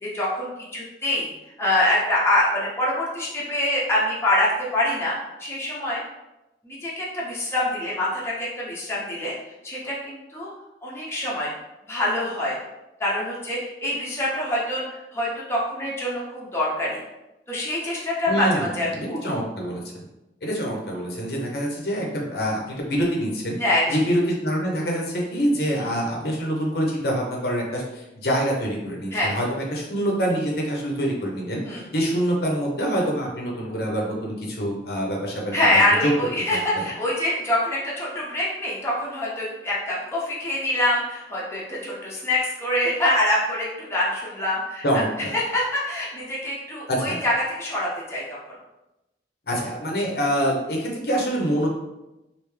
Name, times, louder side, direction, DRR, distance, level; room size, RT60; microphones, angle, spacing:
voice 1, 0.0-1.3 1.6-5.1 5.4-6.0 6.6-9.3 9.6-10.5 10.8-11.5 11.9-12.6 13.0-17.0 17.5-19.2 23.6-24.0 25.8-25.9 29.1-29.3 31.6-31.8 35.5-44.8 45.5-47.3 47.6-48.2, left 1 dB, 15° left, -6 dB, 0.8 m, -25 dB
voice 2, 18.3-20.0 20.4-23.6 23.9-35.5 36.0-36.1 36.5-36.6 44.8-45.3 46.9-47.2 49.5-51.7, equal, 60° left, -1 dB, 0.8 m, -25 dB
3.3 x 2.7 x 3.2 m, 0.96 s
head